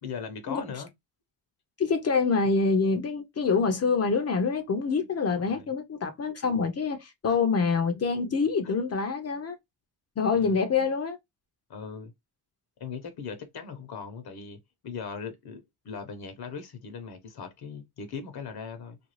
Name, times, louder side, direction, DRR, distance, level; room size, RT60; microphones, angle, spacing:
voice 1, 0.0-0.9 5.3-5.6 7.3-7.4 8.6-8.7 10.3-10.6 11.7-12.1 12.8-19.0, left 6 dB, 60° left, 0.9 m, -39 dB
voice 2, 1.8-9.6 10.2-11.2, left 4 dB, 35° left, 0.6 m, -26 dB
2.5 x 2.3 x 3.1 m
cardioid pair, 95°, 41 cm